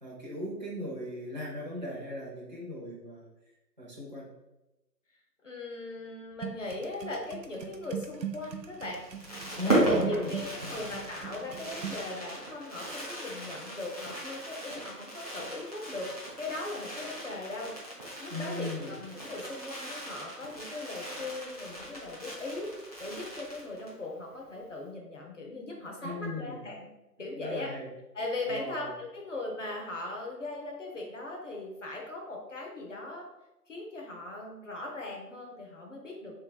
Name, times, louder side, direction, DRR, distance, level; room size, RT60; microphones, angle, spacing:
voice 1, 0.0-3.3 3.8-4.3 9.6-10.3 10.6-10.9 18.3-18.9 26.0-26.6 27.3-27.9 28.5-28.9, left 1 dB, 30° right, -6 dB, 0.6 m, -37 dB
voice 2, 5.4-9.0 9.7-17.7 18.2-22.7 23.0-26.8 27.2-27.7 28.1-33.3 33.7-36.4, left 2 dB, 50° left, -1 dB, 1.0 m, -39 dB
sound 1, 6.4-12.1, right 8 dB, 85° right, 0.6 m, -40 dB
Fireworks, 8.9-24.0 24.3-24.4 24.6-24.9, right 1 dB, 25° left, 0.7 m, -36 dB
3.3 x 3.2 x 3.8 m, 0.98 s
figure-of-eight pair, 150°, 49 cm